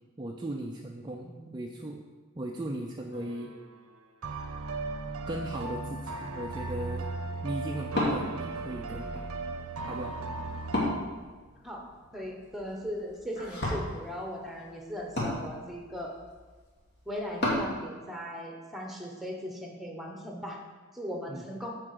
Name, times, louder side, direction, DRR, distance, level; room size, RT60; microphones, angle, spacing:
voice 1, 0.2-1.3 1.5-2.0 2.4-3.5 5.3-7.1 7.4-9.3 9.8-10.2 21.3-21.4, right 1 dB, 20° right, 1 dB, 0.4 m, -37 dB
voice 2, 1.2-1.6 11.6-11.8 12.1-16.1 17.1-20.6 20.9-21.7, equal, ahead, 1 dB, 1.0 m, -38 dB
sound 1, 3.1-3.6 4.2-11.0, right 3 dB, 85° right, 0.7 m, -37 dB
Wood, 6.2-17.7, left 1 dB, 50° left, 2.0 m, -36 dB
7.3 x 4.7 x 6.7 m, 1.4 s
head